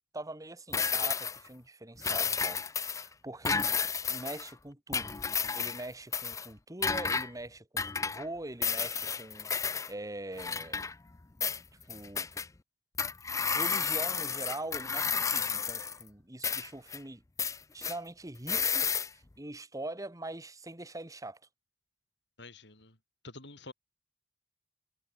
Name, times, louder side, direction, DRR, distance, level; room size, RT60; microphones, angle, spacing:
voice 1, 0.1-3.7 4.1-9.5 9.9-10.8 11.9-12.3 13.5-17.2 17.7-18.9 19.1-21.4, right 1 dB, 20° right, 2.0 m, -43 dB
sound 1, 0.7-1.5 2.0-3.1 3.4-4.5 4.9-5.9 6.1-6.5 6.8-7.3 7.8-8.2 8.6-9.9 10.4-11.2 11.4-12.5 13.0-16.0 16.4-17.0 17.4-18.0 18.5-19.1, left 6 dB, 15° left, 0.4 m, -31 dB
voice 2, 22.4-23.0 23.2-23.7, left 2 dB, 65° left, 6.7 m, -48 dB
head